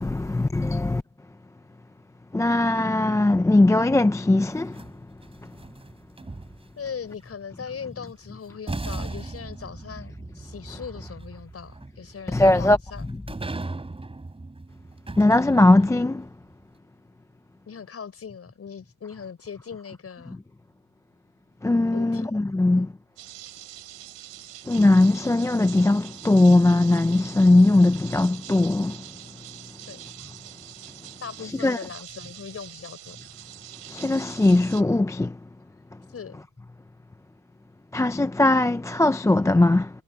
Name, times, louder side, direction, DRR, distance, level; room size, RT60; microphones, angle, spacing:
voice 1, 0.0-1.0 2.3-4.8 12.3-12.8 15.2-16.2 21.6-22.9 24.7-29.0 31.6-31.8 33.9-35.3 37.9-39.9, left 2 dB, 5° left, 0.5 m, -19 dB
sound 1, 4.5-6.9 8.1-8.2 8.7-16.1, right 2 dB, 15° right, 3.5 m, -38 dB
voice 2, 6.8-13.1 17.7-20.4 21.9-22.3 22.7-22.9 29.9-30.0 31.2-33.2 36.1-36.4, left 6 dB, 35° left, 5.4 m, -39 dB
sound 2, 23.2-34.8, right 15 dB, 70° right, 3.9 m, -44 dB
cardioid pair, 115°, 43 cm